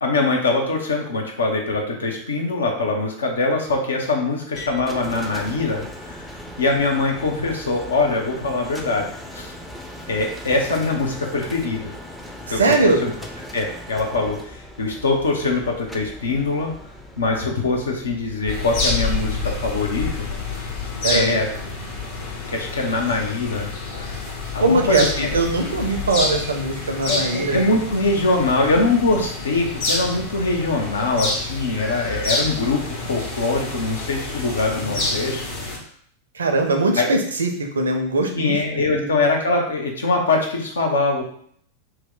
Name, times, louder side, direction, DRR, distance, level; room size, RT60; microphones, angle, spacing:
voice 1, 0.0-6.3 6.6-9.1 9.3-9.5 10.1-11.9 12.5-13.1 13.5-16.7 17.2-20.3 21.1-21.5 22.5-24.3 24.5-25.3 27.1-35.5 37.0-37.1 38.4-41.2, left 3 dB, 70° left, 1 dB, 0.6 m, -23 dB
sound 1, 4.5-22.4, equal, 5° left, 0.4 m, -39 dB
voice 2, 12.5-13.0 21.0-21.4 24.6-27.6 34.6-35.1 36.3-38.5 39.0-39.1, right 2 dB, 70° right, 4 dB, 0.5 m, -21 dB
sound 2, 18.5-35.8, left 3 dB, 50° left, 0.9 m, -28 dB
2.9 x 2.1 x 3.8 m, 0.63 s
figure-of-eight pair, 90°, 0 cm